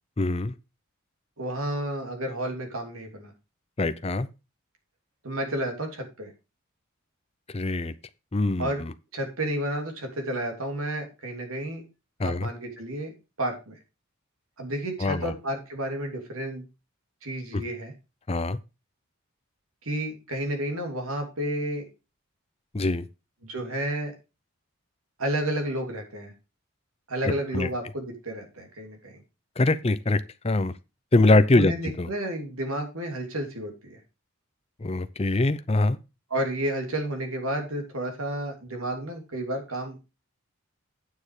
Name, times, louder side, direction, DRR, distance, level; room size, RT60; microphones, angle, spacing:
voice 1, 0.2-0.5 3.8-4.3 7.5-7.9 8.3-8.9 12.2-12.5 15.0-15.3 17.5-17.6 18.3-18.6 22.7-23.0 27.2-27.7 29.6-30.7 31.1-32.1 34.8-36.0, left 2 dB, 30° left, 0.6 m, -23 dB
voice 2, 1.4-3.3 5.2-6.3 8.6-8.8 9.1-11.8 12.2-13.1 13.4-13.8 14.6-16.6 17.2-17.9 19.8-21.9 23.4-24.1 25.2-26.3 27.1-29.2 31.3-34.0 36.3-40.0, right 1 dB, 80° right, 3.0 m, -31 dB
9.5 x 6.5 x 4.9 m
head